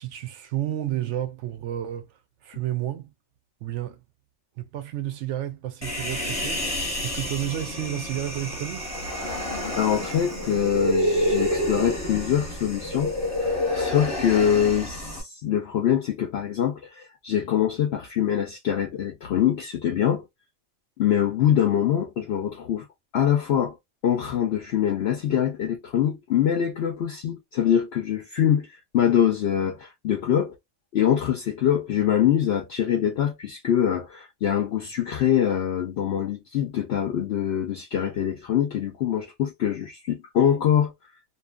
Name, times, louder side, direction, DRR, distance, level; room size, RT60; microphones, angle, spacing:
voice 1, 0.0-3.1 3.6-4.0 4.6-8.9, right 12 dB, 70° right, 0.8 m, -31 dB
Human voice, 5.8-15.2, equal, 15° left, 0.9 m, -28 dB
voice 2, 9.7-20.3 21.0-22.9 23.1-23.8 24.0-30.6 30.9-40.9, left 9 dB, 65° left, 0.7 m, -24 dB
2.6 x 2.4 x 2.3 m
omnidirectional pair, 1.3 m